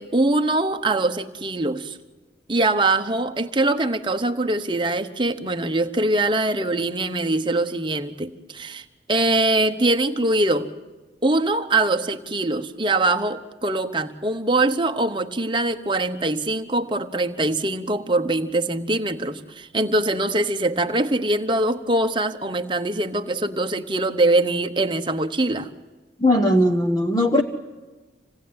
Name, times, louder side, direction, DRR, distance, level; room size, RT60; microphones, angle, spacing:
voice 1, 0.0-2.0 2.5-10.7 11.2-25.7, right 2 dB, 25° right, 6 dB, 1.1 m, -23 dB
voice 2, 26.2-27.4, left 1 dB, 20° left, 3 dB, 1.1 m, -18 dB
27.0 x 18.5 x 9.6 m, 1.3 s
head